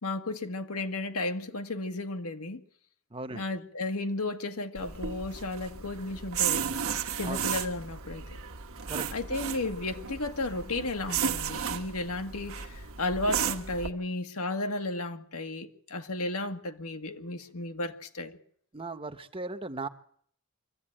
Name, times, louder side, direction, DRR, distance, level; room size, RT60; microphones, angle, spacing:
voice 1, 0.0-2.6 3.3-6.7 7.2-8.3 9.1-18.4, left 2 dB, 85° left, 1.7 m, -33 dB
voice 2, 3.1-3.4 7.2-7.4 8.9-9.1 18.7-19.9, right 3 dB, 25° right, 0.9 m, -37 dB
sound 1, 4.7-13.9, right 7 dB, 75° right, 1.4 m, -34 dB
24.0 x 15.0 x 8.8 m
head